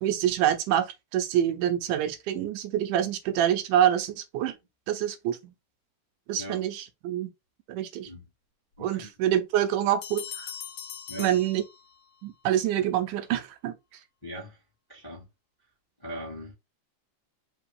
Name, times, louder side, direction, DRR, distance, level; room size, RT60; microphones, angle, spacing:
voice 1, 0.0-4.6 4.9-5.5 6.3-7.3 7.7-8.1 8.8-10.5 11.2-11.6 12.2-13.7, right 11 dB, 80° right, 2.1 m, -26 dB
voice 2, 8.8-9.1 11.1-11.4 14.2-14.6 14.9-15.3 16.0-16.5, equal, 10° left, 1.0 m, -40 dB
sound 1, 10.0-12.3, left 8 dB, 75° left, 1.3 m, -41 dB
5.1 x 2.8 x 3.3 m
omnidirectional pair, 3.8 m